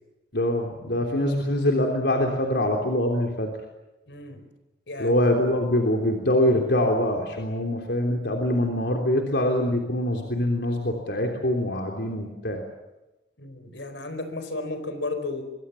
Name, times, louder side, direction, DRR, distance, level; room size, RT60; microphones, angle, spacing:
voice 1, 0.3-3.5 5.0-12.6, left 1 dB, 75° left, 2 dB, 3.4 m, -24 dB
voice 2, 4.1-4.4 4.9-5.2 13.4-15.4, left 2 dB, 90° left, 9 dB, 4.6 m, -33 dB
25.0 x 24.5 x 7.1 m, 1.0 s
head